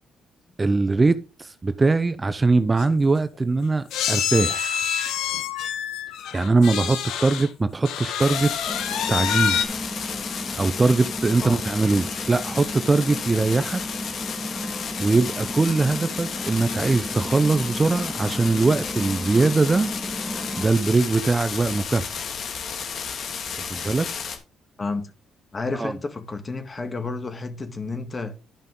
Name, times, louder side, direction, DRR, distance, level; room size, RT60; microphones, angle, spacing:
voice 1, 0.6-4.8 6.3-8.5 9.1-9.7 10.6-13.8 15.0-19.9 20.6-22.2 23.6-24.1 25.7-25.9, right 3 dB, 25° right, 0.6 m, -21 dB
sound 1, 2.5-2.6 2.8-3.0 3.9-7.5 7.8-9.6, left 9 dB, 85° left, 1.2 m, -27 dB
sound 2, 8.2-24.4, left 6 dB, 60° left, 2.1 m, -33 dB
sound 3, 8.7-20.7, equal, 10° left, 1.7 m, -34 dB
voice 2, 24.8-25.1 25.5-28.4, left 3 dB, 30° left, 1.7 m, -31 dB
12.0 x 5.4 x 3.8 m
cardioid pair, 90°, 0 cm